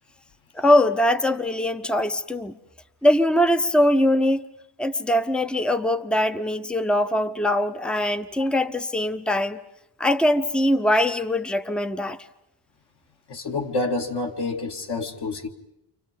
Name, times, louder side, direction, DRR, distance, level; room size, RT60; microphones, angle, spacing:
voice 1, 0.6-2.5 3.0-4.4 4.8-9.6 10.0-12.2, left 1 dB, ahead, 0.9 m, -22 dB
voice 2, 13.3-15.5, left 3 dB, 55° left, 2.7 m, -28 dB
30.0 x 26.5 x 5.4 m
cardioid pair, 125°, 48 cm